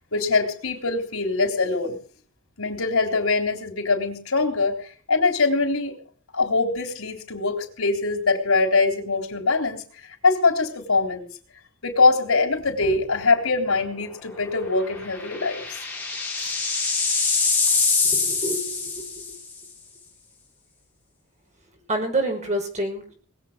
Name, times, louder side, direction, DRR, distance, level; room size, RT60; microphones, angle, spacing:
voice 1, 0.1-2.0 2.6-6.0 6.3-9.8 10.2-11.3 11.8-15.8, left 3 dB, 90° left, 4 dB, 3.7 m, -23 dB
sound 1, 12.6-13.0 13.3-13.4 14.9-19.5, left 4 dB, 10° left, 4.8 m, -24 dB
voice 2, 18.1-19.3 21.9-23.1, right 1 dB, 35° right, 2 dB, 5.6 m, -28 dB
20.5 x 8.0 x 7.5 m, 0.43 s
head